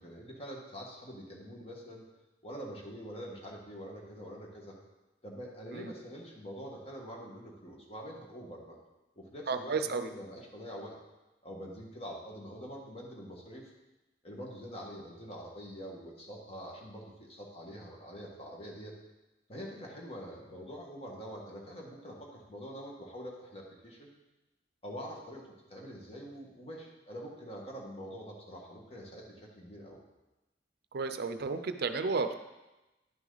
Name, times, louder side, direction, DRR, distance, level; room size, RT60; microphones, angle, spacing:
voice 1, 0.0-2.0 2.4-4.8 5.2-8.8 9.1-10.9 11.4-13.7 14.2-18.9 19.5-24.1 24.8-30.0, equal, 35° left, -2 dB, 1.7 m, -45 dB
voice 2, 9.5-10.1 30.9-32.3, right 4 dB, 60° right, 9 dB, 0.5 m, -32 dB
10.5 x 6.1 x 4.0 m, 1.0 s
head